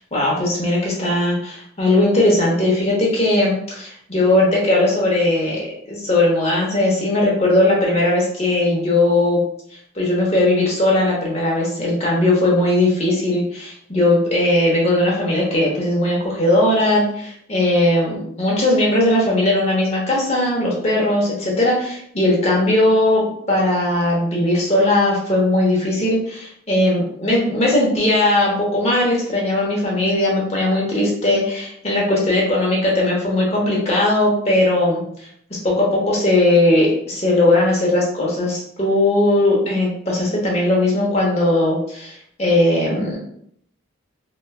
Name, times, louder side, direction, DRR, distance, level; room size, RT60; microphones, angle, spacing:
voice 1, 0.0-9.4 9.9-35.0 35.6-43.2, left 1 dB, 30° left, -3 dB, 0.8 m, -18 dB
3.0 x 2.3 x 2.2 m, 0.67 s
head